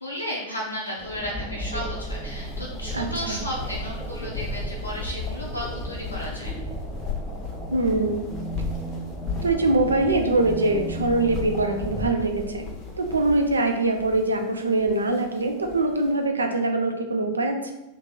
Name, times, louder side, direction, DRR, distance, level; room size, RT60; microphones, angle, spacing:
voice 1, 0.0-6.5, equal, 85° left, -3 dB, 0.4 m, -33 dB
sound 1, 1.0-12.1, right 1 dB, 15° right, 0.6 m, -34 dB
sound 2, 1.9-16.1, left 5 dB, 35° left, 0.6 m, -37 dB
voice 2, 2.9-3.4 7.7-8.3 9.4-12.7 13.0-17.7, right 2 dB, 75° right, 4 dB, 0.4 m, -23 dB
2.8 x 2.5 x 3.7 m, 0.98 s
figure-of-eight pair, 90°, 0 cm